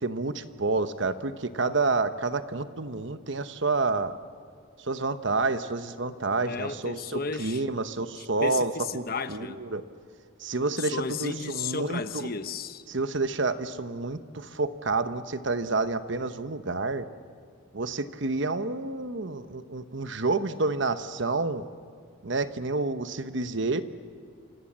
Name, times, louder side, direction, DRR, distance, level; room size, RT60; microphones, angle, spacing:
voice 1, 0.0-4.1 4.8-9.0 9.3-9.8 10.4-12.3 12.9-17.1 17.7-21.7 22.2-23.8, right 3 dB, 60° right, 11 dB, 1.0 m, -29 dB
voice 2, 6.4-7.6 8.2-9.6 10.8-12.8, left 4 dB, 45° left, 10 dB, 1.0 m, -34 dB
29.5 x 27.0 x 7.5 m, 2.1 s
head